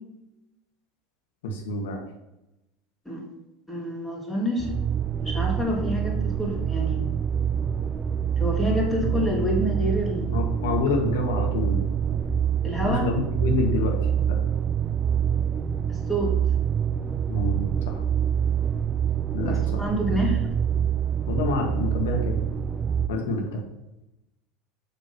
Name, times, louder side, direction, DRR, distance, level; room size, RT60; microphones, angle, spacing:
voice 1, 1.4-2.0 10.3-11.8 12.8-14.0 14.3-14.4 17.3-18.0 19.3-19.8 21.3-22.4 23.1-23.6, left 2 dB, 70° left, 2 dB, 1.6 m, -27 dB
voice 2, 3.7-4.7 5.2-7.1 8.4-10.4 12.6-13.1 15.9-16.3 19.4-20.4, equal, 10° left, -2 dB, 2.5 m, -28 dB
sound 1, 4.6-23.1, right 8 dB, 30° right, 0.4 m, -26 dB
7.0 x 3.7 x 6.1 m, 0.93 s
figure-of-eight pair, 75°, 0 cm